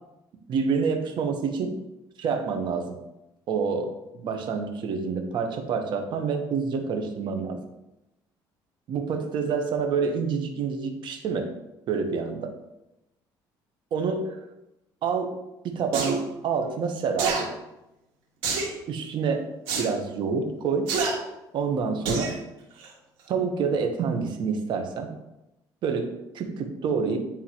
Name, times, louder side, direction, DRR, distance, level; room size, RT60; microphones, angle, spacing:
voice 1, 0.5-1.8 2.2-3.0 3.5-3.9 4.2-7.6 8.9-11.5 11.9-12.5 13.9-14.4 15.0-15.4 15.6-17.5 18.9-19.4 19.8-20.9 21.5-22.3 23.3-25.1 25.8-27.2, right 5 dB, 60° right, 5 dB, 1.0 m, -27 dB
sound 1, 15.9-16.2 17.2-17.4 18.4-18.7 19.7-19.9 20.9-21.1 22.0-22.3 22.8-22.9, right 4 dB, 85° right, 1.9 m, -26 dB
9.9 x 3.7 x 2.9 m, 0.93 s
cardioid pair, 105°, 9 cm